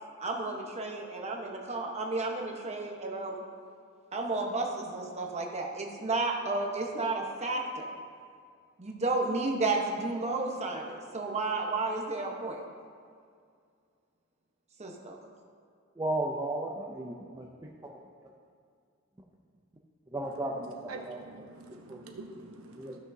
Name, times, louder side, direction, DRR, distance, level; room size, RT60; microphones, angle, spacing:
voice 1, 0.2-3.4 4.1-7.9 8.8-12.6 14.8-15.2, right 3 dB, 30° right, 1 dB, 1.0 m, -32 dB
voice 2, 16.0-17.9 20.1-21.2 21.9-22.0 22.8-23.0, right 1 dB, 15° right, -1 dB, 0.5 m, -35 dB
voice 3, 20.9-23.0, right 3 dB, 85° right, 2 dB, 0.8 m, -45 dB
14.5 x 6.3 x 2.7 m, 2.2 s
head